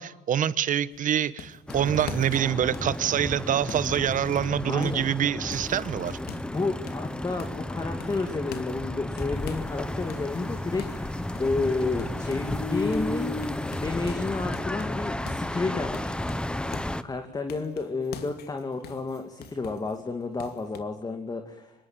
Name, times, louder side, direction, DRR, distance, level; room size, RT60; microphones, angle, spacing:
voice 1, 0.0-6.2, right 9 dB, 50° right, 1.3 m, -26 dB
sound 1, 0.9-5.1 5.5-6.6 6.9-7.7 8.0-9.8 10.1-12.7 12.9-13.1 13.4-17.0 17.5-20.0 20.4-20.8, left 7 dB, 70° left, 2.6 m, -45 dB
sound 2, 1.7-17.0, left 1 dB, 5° left, 1.2 m, -33 dB
voice 2, 4.7-5.1 6.3-11.1 11.4-16.2 17.0-21.7, left 3 dB, 20° left, 2.6 m, -31 dB
sound 3, 9.3-14.5, left 3 dB, 40° left, 4.6 m, -37 dB
26.0 x 22.0 x 9.3 m
cardioid pair, 110°, 17 cm